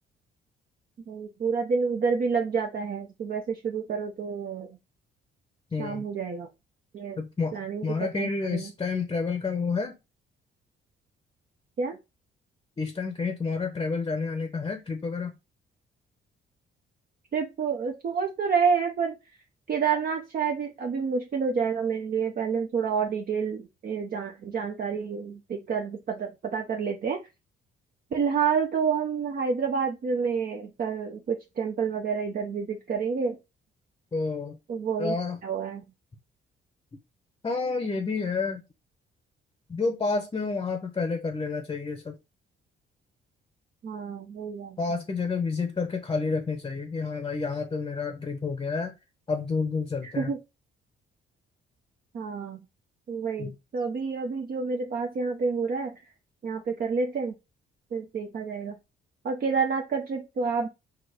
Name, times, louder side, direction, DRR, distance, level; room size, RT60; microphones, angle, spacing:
voice 1, 1.1-4.7 5.8-6.5 6.9-7.2 7.5-8.7 11.8-12.0 17.3-19.2 19.7-27.2 28.1-33.4 34.7-35.2 35.4-35.8 43.8-44.8 50.0-50.4 52.1-52.6 53.1-56.0 56.4-57.3 57.9-58.7 59.2-60.7, right 5 dB, 50° right, 0.7 m, -29 dB
voice 2, 5.7-6.0 7.2-7.6 7.8-9.9 12.8-15.3 34.1-34.6 35.0-35.4 37.4-38.6 39.7-42.2 44.8-48.9 49.3-50.3 53.4-53.6, left 4 dB, 25° left, 0.7 m, -29 dB
4.4 x 2.5 x 4.8 m
cardioid pair, 90°, 20 cm